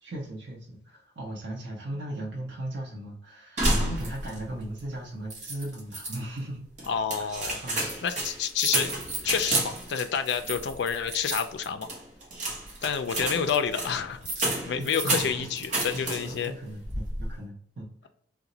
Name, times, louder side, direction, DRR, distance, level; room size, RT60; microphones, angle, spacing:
voice 1, 0.0-6.7 7.2-7.3 7.6-7.9 14.6-15.3 15.9-18.1, right 1 dB, 80° right, -3 dB, 0.6 m, -38 dB
door close, 3.6-4.5 4.8-4.9 5.3-6.2 6.8-16.5 16.8-17.3, right 1 dB, 40° right, 0.9 m, -31 dB
voice 2, 6.9-8.9 9.2-11.9 12.8-14.2 14.7-16.5, left 7 dB, 65° left, 8 dB, 0.3 m, -29 dB
2.8 x 2.1 x 3.8 m, 0.67 s
head